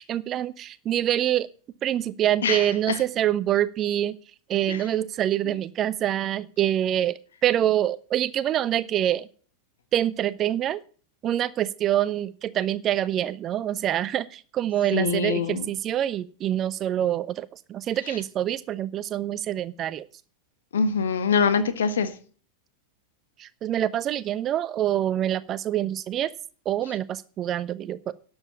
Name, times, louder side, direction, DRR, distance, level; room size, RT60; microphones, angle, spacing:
voice 1, 0.0-1.5 1.8-4.2 4.5-9.3 9.9-10.8 11.2-20.1 23.4-26.3 26.7-28.1, right 11 dB, 30° right, 18 dB, 0.6 m, -26 dB
voice 2, 2.4-3.0 4.7-4.8 14.9-15.7 20.7-22.1, left 5 dB, 65° left, 11 dB, 1.4 m, -24 dB
11.5 x 7.2 x 7.0 m, 0.42 s
figure-of-eight pair, 90°, 0 cm